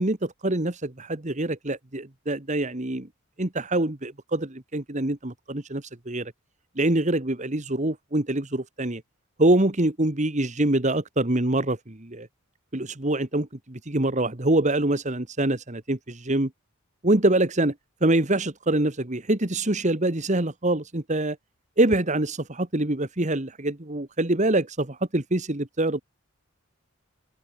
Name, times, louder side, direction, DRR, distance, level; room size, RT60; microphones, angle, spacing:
voice 1, 0.0-3.1 3.4-6.3 6.8-9.0 9.4-12.3 12.7-16.5 17.0-17.7 18.0-21.4 21.8-26.0, right 1 dB, 35° right, 1.7 m, -25 dB
open air
head